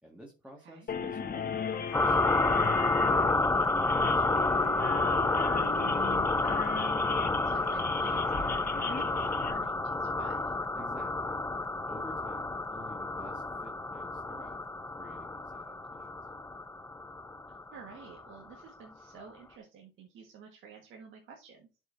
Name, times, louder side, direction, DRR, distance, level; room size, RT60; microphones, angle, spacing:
voice 1, 0.0-4.3 10.7-11.4 11.9-14.6 14.9-16.3, equal, 5° right, -1 dB, 1.9 m, -52 dB
sound 1, 0.9-9.5, left 6 dB, 50° left, 1.2 m, -37 dB
sound 2, 1.9-18.2, left 2 dB, 15° left, 0.5 m, -30 dB
voice 2, 5.6-6.9 7.4-10.5 17.5-21.7, right 6 dB, 80° right, 0 dB, 1.7 m, -50 dB
11.0 x 5.4 x 2.7 m, 0.31 s
cardioid pair, 90°, 20 cm